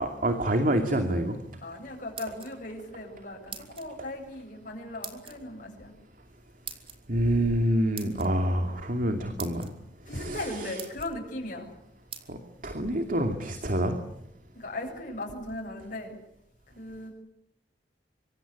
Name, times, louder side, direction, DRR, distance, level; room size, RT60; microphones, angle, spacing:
voice 1, 0.0-1.4 7.1-9.7 10.1-10.8 12.3-14.0, right 1 dB, 50° right, 6 dB, 2.6 m, -27 dB
voice 2, 1.6-5.9 10.0-11.7 14.5-16.1 16.8-17.1, left 1 dB, 50° left, 0 dB, 7.8 m, -37 dB
sound 1, 1.9-2.8 3.5-3.9 5.0-5.4 6.7-7.0 7.9-8.3 9.0-9.1 9.4-9.7 10.3-10.4 10.8-11.1 12.1-12.3, right 7 dB, 35° right, 3.5 m, -41 dB
25.5 x 25.0 x 8.4 m, 0.81 s
head